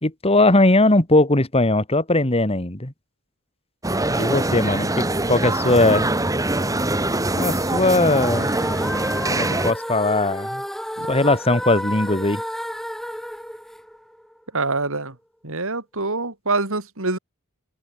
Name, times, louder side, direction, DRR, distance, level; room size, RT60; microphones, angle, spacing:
voice 1, 0.0-2.9 4.1-6.1 7.4-8.5 9.3-10.6 11.1-12.4, left 2 dB, 25° left, 2.7 m, -19 dB
sound 1, 3.8-9.7, right 2 dB, 15° right, 1.9 m, -23 dB
sound 2, 8.3-14.4, equal, ahead, 4.8 m, -31 dB
voice 2, 14.5-15.2 15.4-17.2, right 3 dB, 65° right, 4.1 m, -25 dB
open air
head